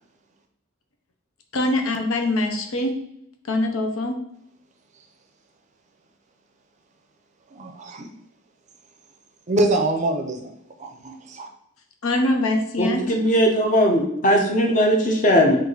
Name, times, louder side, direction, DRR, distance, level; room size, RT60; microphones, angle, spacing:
voice 1, 1.5-2.9 3.5-4.1 12.0-13.0, left 1 dB, 80° left, 4 dB, 0.7 m, -23 dB
voice 2, 7.5-8.1 9.5-11.5, right 2 dB, 35° right, 4 dB, 0.5 m, -25 dB
voice 3, 12.8-15.6, equal, 40° left, 2 dB, 0.7 m, -19 dB
4.6 x 2.5 x 3.8 m, 0.74 s
head